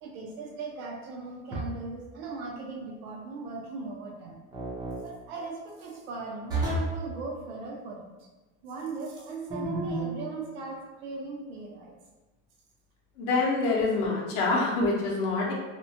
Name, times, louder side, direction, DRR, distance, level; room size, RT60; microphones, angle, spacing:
voice 1, 0.0-4.4 5.0-8.1 8.6-11.9, right 3 dB, 80° right, 0 dB, 0.6 m, -38 dB
sound 1, 1.5-2.0 4.5-5.0 6.5-7.0 9.5-10.2, right 2 dB, 15° right, 0.4 m, -31 dB
voice 2, 13.2-15.5, left 3 dB, 55° left, -3 dB, 0.6 m, -26 dB
2.9 x 2.1 x 2.6 m, 1.2 s
cardioid pair, 175°, 31 cm